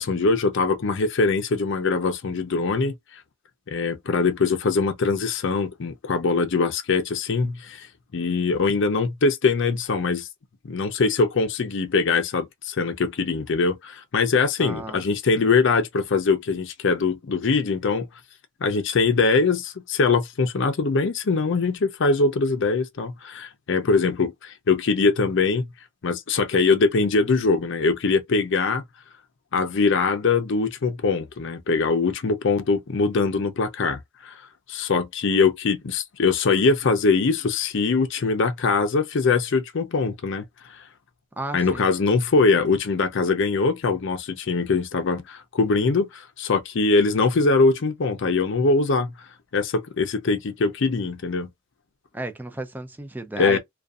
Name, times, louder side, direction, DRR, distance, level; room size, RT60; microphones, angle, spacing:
voice 1, 0.0-3.2 3.7-7.9 8.1-10.3 10.6-18.1 18.6-25.7 26.0-28.8 29.5-34.4 34.7-40.8 41.5-49.1 49.5-51.5 53.4-53.6, left 4 dB, 60° left, 0.5 m, -22 dB
voice 2, 14.6-15.0 41.4-41.9 52.1-53.6, right 2 dB, 10° right, 0.4 m, -33 dB
2.5 x 2.3 x 2.3 m
head